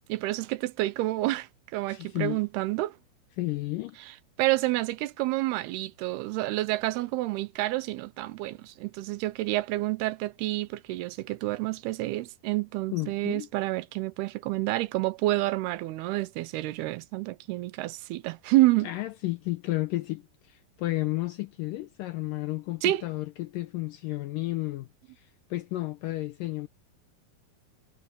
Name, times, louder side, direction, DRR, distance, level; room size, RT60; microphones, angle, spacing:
voice 1, 0.1-3.0 4.4-18.9 22.8-23.0, right 18 dB, 85° right, 2.8 m, -28 dB
voice 2, 1.9-2.4 3.4-4.0 12.9-13.5 18.8-24.9 25.1-26.7, left 18 dB, 80° left, 2.0 m, -32 dB
omnidirectional pair, 4.6 m